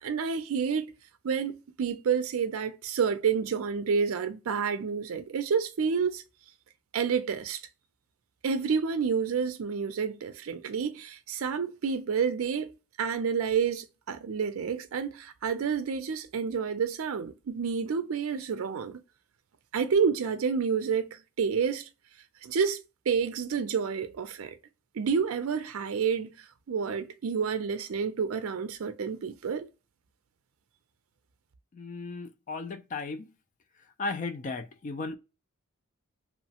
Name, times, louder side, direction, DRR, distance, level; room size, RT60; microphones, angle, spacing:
voice 1, 0.0-0.9 1.2-6.2 6.9-7.6 8.4-19.0 19.7-21.9 22.4-24.5 25.0-29.7, right 6 dB, 75° right, 0.4 m, -29 dB
voice 2, 31.8-33.3 34.0-35.2, left 3 dB, 35° left, 0.4 m, -35 dB
3.0 x 2.0 x 2.8 m
head